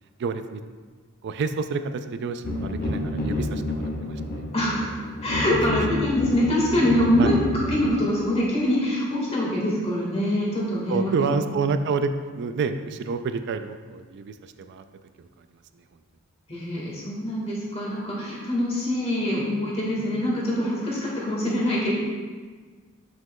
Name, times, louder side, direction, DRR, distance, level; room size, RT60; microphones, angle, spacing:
voice 1, 0.2-0.6 1.2-4.2 7.2-7.3 10.9-14.8 15.2-15.3 15.7-15.8, right 4 dB, 55° right, 10 dB, 0.3 m, -28 dB
sound 1, 2.4-7.9, left 1 dB, 45° left, 0.9 m, -29 dB
voice 2, 4.5-4.9 5.2-11.6 16.5-21.9, left 1 dB, 30° left, -5 dB, 1.6 m, -24 dB
7.5 x 5.9 x 2.2 m, 1.5 s
head